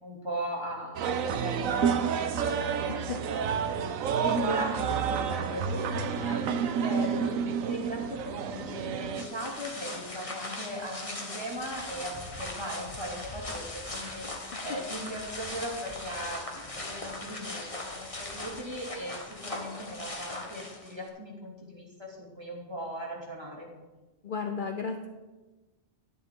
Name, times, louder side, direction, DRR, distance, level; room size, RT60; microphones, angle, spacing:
voice 1, 0.0-2.9 3.2-23.7, equal, 20° right, -3 dB, 2.5 m, -38 dB
sound 1, 1.0-9.2, right 7 dB, 80° right, 1.1 m, -29 dB
voice 2, 2.9-3.2 14.5-14.7 24.2-25.1, left 5 dB, 45° left, 5 dB, 0.8 m, -34 dB
sound 2, 9.1-21.1, left 2 dB, 25° left, 1.4 m, -39 dB
12.0 x 10.0 x 3.8 m, 1.2 s
omnidirectional pair, 1.4 m